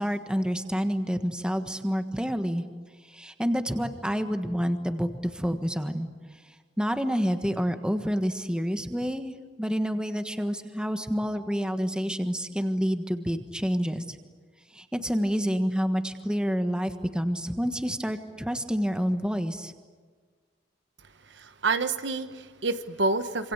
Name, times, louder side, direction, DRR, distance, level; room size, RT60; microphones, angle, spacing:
voice 1, 0.0-2.6 3.1-6.1 6.8-14.2 14.7-19.7, equal, 5° right, 7 dB, 1.4 m, -28 dB
voice 2, 21.3-23.5, right 3 dB, 70° right, 10 dB, 1.3 m, -28 dB
27.0 x 26.5 x 8.2 m, 1.5 s
head